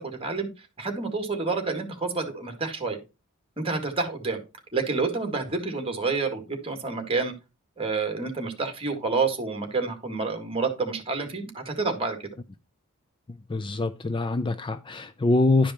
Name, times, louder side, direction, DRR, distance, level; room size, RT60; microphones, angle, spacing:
voice 1, 0.1-0.5 0.8-3.0 3.6-4.4 4.7-7.3 7.8-12.2, right 4 dB, 25° right, 1.9 m, -28 dB
voice 2, 13.5-15.7, left 2 dB, 25° left, 0.4 m, -24 dB
11.0 x 5.1 x 4.2 m
head